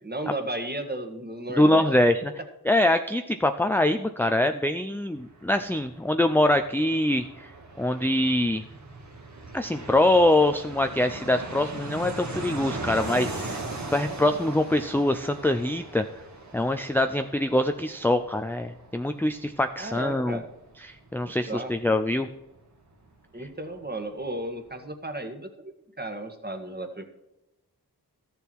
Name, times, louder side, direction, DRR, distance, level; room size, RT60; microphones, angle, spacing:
voice 1, 0.0-1.8 19.8-20.5 21.5-21.7 23.3-25.7 26.0-27.0, right 1 dB, 25° right, 6 dB, 1.7 m, -34 dB
voice 2, 1.6-2.2 2.7-7.5 7.8-8.6 9.5-13.6 13.9-16.0 16.5-20.4 20.8-22.3, left 1 dB, 5° left, 7 dB, 0.5 m, -24 dB
Fixed-wing aircraft airplane, 5.1-23.5 23.8-23.9 24.1-24.8, right 2 dB, 45° right, 1.8 m, -40 dB
13.5 x 6.9 x 4.6 m, 0.93 s
wide cardioid pair, 55°, 38 cm